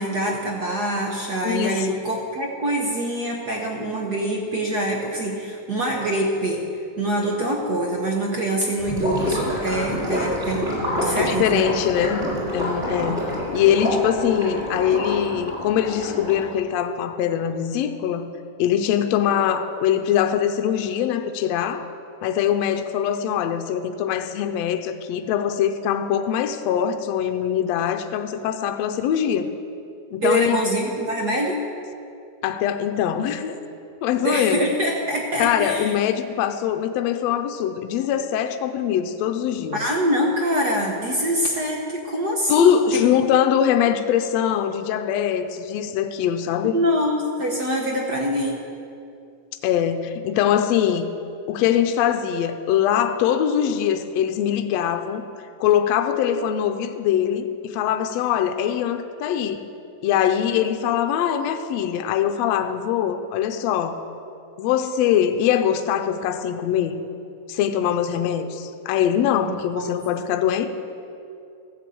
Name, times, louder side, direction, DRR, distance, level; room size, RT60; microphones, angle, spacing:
voice 1, 0.0-6.6 7.0-11.7 30.2-31.6 34.2-35.9 39.7-43.0 46.7-48.6 69.5-69.9 70.2-70.3, right 1 dB, 70° right, 0 dB, 0.9 m, -24 dB
voice 2, 1.4-2.0 11.1-12.2 12.5-13.3 13.5-18.3 18.6-21.9 22.2-29.5 30.1-30.7 32.4-33.6 34.0-34.7 35.4-39.8 42.5-46.8 49.6-51.1 51.5-55.2 55.6-59.7 60.0-64.0 64.6-67.0 67.5-70.7, left 9 dB, 75° left, 7 dB, 1.7 m, -22 dB
Gurgling / Liquid, 8.8-16.5, equal, 15° right, 4.0 m, -27 dB
14.5 x 8.4 x 7.6 m, 2.7 s
omnidirectional pair, 3.4 m